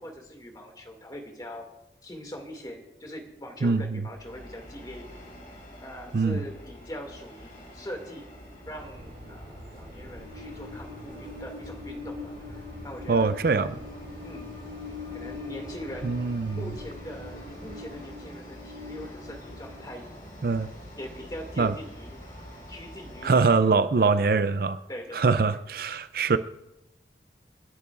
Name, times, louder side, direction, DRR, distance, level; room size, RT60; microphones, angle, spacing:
voice 1, 0.0-1.6 2.0-5.2 5.8-8.3 8.7-13.9 14.2-14.5 15.1-16.2 16.5-20.0 21.0-22.2 22.7-24.2 24.9-25.6, equal, 20° left, 3 dB, 2.3 m, -42 dB
voice 2, 3.6-4.0 6.1-6.4 13.1-13.7 16.0-16.6 20.4-20.7 21.6-21.7 23.2-24.8 25.1-26.4, right 4 dB, 55° right, 12 dB, 0.5 m, -23 dB
Train, 4.1-23.6, left 2 dB, 50° left, 5.9 m, -43 dB
sound 1, 8.6-18.0, right 1 dB, 75° right, 5.6 m, -46 dB
29.5 x 10.5 x 2.5 m, 0.93 s
head